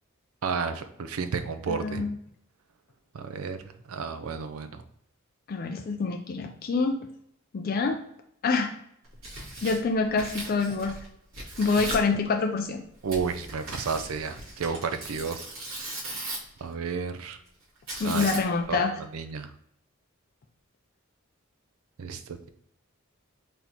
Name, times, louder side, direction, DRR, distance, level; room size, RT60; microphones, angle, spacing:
voice 1, 0.4-2.1 3.1-3.6 3.9-4.8 13.0-15.4 15.8-15.9 16.6-17.4 18.0-18.3 18.7-19.5 22.0-22.5, right 5 dB, 90° right, 9 dB, 0.5 m, -32 dB
voice 2, 1.7-2.1 5.5-7.1 7.5-8.0 8.4-8.7 9.6-11.0 11.6-12.8 18.0-18.9, left 4 dB, 45° left, 4 dB, 0.4 m, -26 dB
Tearing, 9.0-11.1 11.3-12.1 13.1-16.6 17.9-18.7, right 2 dB, 70° right, 1.7 m, -38 dB
4.1 x 3.6 x 2.9 m, 0.72 s
head